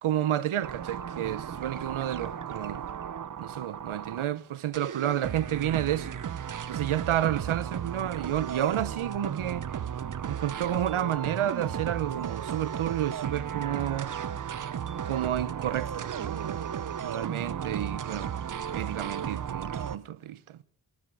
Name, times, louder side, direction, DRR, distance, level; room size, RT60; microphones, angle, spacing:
voice 1, 0.0-2.8 3.4-6.1 6.7-9.7 10.3-14.1 15.0-16.7 17.0-18.3 18.7-20.6, right 11 dB, 90° right, 0.7 m, -30 dB
sound 1, 0.6-4.4 4.7-20.0, right 8 dB, 45° right, 0.5 m, -35 dB
12.0 x 9.3 x 9.6 m
wide cardioid pair, 110°, 47 cm